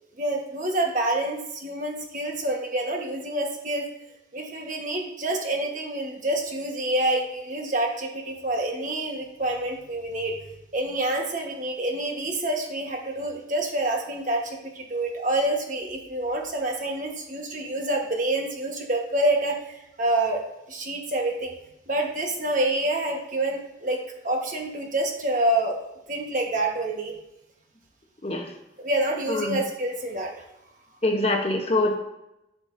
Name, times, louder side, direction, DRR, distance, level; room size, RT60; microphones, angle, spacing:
voice 1, 0.2-3.8 4.3-10.4 10.7-20.4 20.7-21.5 21.9-24.0 24.2-25.8 26.1-27.1 28.8-30.3, right 1 dB, 40° right, 1 dB, 1.3 m, -27 dB
voice 2, 31.0-32.0, left 2 dB, 30° left, 2 dB, 0.9 m, -24 dB
12.5 x 5.0 x 2.6 m, 0.88 s
head